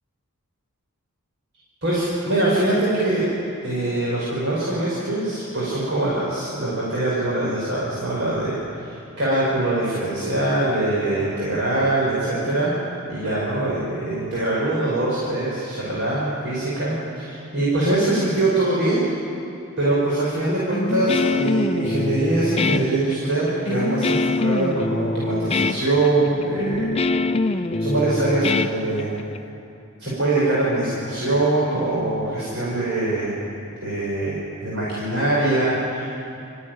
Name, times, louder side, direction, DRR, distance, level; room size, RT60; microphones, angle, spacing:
voice 1, 1.8-3.3 3.6-12.8 13.1-19.0 19.8-26.9 27.4-29.1 30.0-33.4 33.8-36.1, right 2 dB, 55° right, -8 dB, 5.7 m, -23 dB
Guitar, 20.7-29.4, left 2 dB, 30° left, 0.6 m, -24 dB
26.5 x 15.0 x 9.5 m, 2.7 s
head